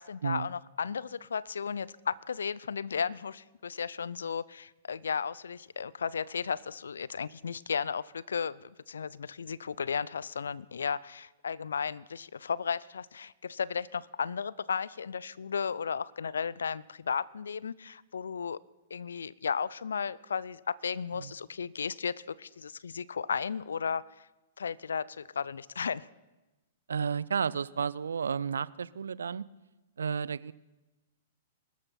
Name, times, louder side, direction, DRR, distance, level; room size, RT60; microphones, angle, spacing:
voice 1, 0.0-18.6 18.9-24.0 24.6-26.1, left 6 dB, 75° left, 22 dB, 0.4 m, -34 dB
voice 2, 26.9-29.4 30.0-30.5, right 6 dB, 75° right, 21 dB, 0.4 m, -32 dB
22.0 x 13.0 x 4.3 m, 1.1 s
figure-of-eight pair, 110°, 0 cm